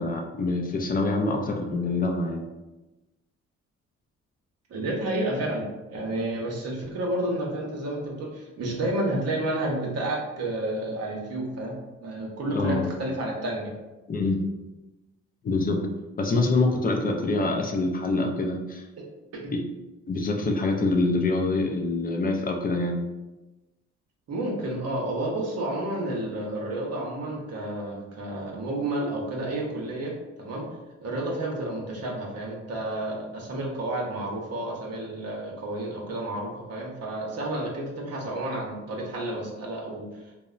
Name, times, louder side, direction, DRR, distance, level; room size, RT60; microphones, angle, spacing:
voice 1, 0.0-2.4 12.5-12.9 14.1-14.4 15.4-15.8 16.2-18.8 19.5-19.6 20.1-23.0, left 2 dB, 30° left, 1 dB, 0.3 m, -25 dB
voice 2, 4.7-13.7 19.3-19.5 24.3-30.7 31.0-40.1, right 1 dB, 55° right, -1 dB, 0.7 m, -30 dB
2.9 x 2.0 x 2.3 m, 1.1 s
cardioid pair, 90°, 30 cm